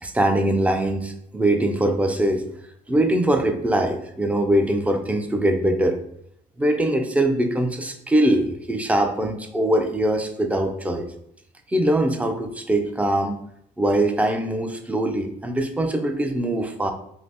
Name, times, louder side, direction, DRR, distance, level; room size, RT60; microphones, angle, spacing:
voice 1, 0.0-2.5 2.9-6.0 6.6-11.1 11.7-13.4 13.8-16.9, right 1 dB, 10° right, 6 dB, 0.3 m, -22 dB
2.7 x 2.5 x 3.4 m, 0.73 s
cardioid pair, 110°, 17 cm